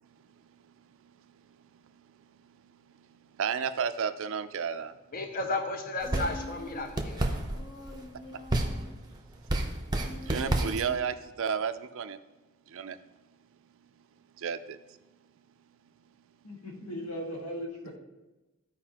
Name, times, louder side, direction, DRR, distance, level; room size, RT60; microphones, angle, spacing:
voice 1, 3.4-4.9 10.2-12.2 12.7-13.0 14.4-14.8, right 6 dB, 60° right, 11 dB, 0.4 m, -32 dB
voice 2, 5.1-7.2, left 2 dB, 40° left, 5 dB, 0.6 m, -33 dB
Human voice, 6.0-7.0 7.5-9.1 9.9-11.2, left 1 dB, 55° left, 1.0 m, -46 dB
sound 1, 6.0-11.0, right 1 dB, 20° right, 0.7 m, -32 dB
voice 3, 16.4-18.0, equal, 85° left, -1 dB, 1.7 m, -38 dB
13.5 x 4.8 x 2.9 m, 1.1 s
head